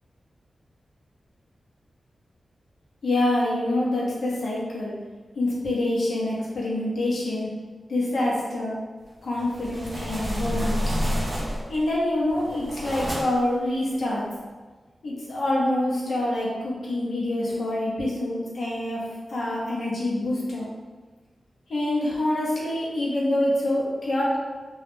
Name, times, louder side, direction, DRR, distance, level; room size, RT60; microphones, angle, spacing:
voice 1, 3.0-4.9 5.4-7.5 7.9-8.7 9.2-10.8 11.7-14.2 15.0-19.0 19.3-20.7 21.7-24.4, left 1 dB, 70° left, -6 dB, 0.7 m, -26 dB
sound 1, 9.3-11.8 12.3-13.5, equal, 30° right, 0.5 m, -29 dB
2.3 x 2.0 x 3.1 m, 1.3 s
wide cardioid pair, 155°, 0 cm